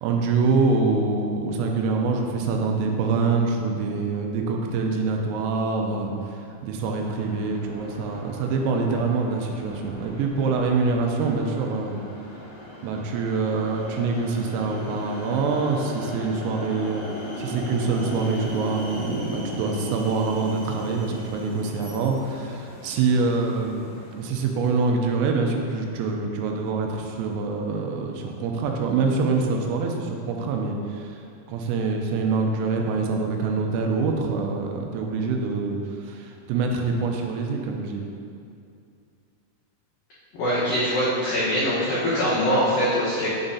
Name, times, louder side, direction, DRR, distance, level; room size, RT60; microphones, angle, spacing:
voice 1, 0.0-6.1 6.6-12.0 12.8-17.1 17.4-31.1 31.5-35.8 36.0-38.0, right 4 dB, 85° right, 2 dB, 3.3 m, -25 dB
sound 1, 7.1-24.5, left 1 dB, 65° left, 1.5 m, -38 dB
voice 2, 40.4-43.3, equal, 85° left, -10 dB, 2.0 m, -23 dB
7.9 x 7.2 x 2.7 m, 2.4 s
omnidirectional pair, 6.0 m